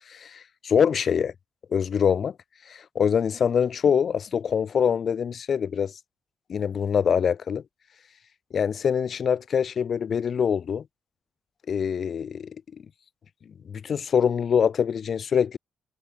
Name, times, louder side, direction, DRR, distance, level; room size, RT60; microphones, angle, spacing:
voice 1, 0.1-1.3 1.7-2.3 2.7-5.9 6.5-7.6 8.5-10.8 11.7-12.6 13.7-15.6, left 7 dB, 45° left, 3.6 m, -24 dB
cardioid pair, 135°, 0 cm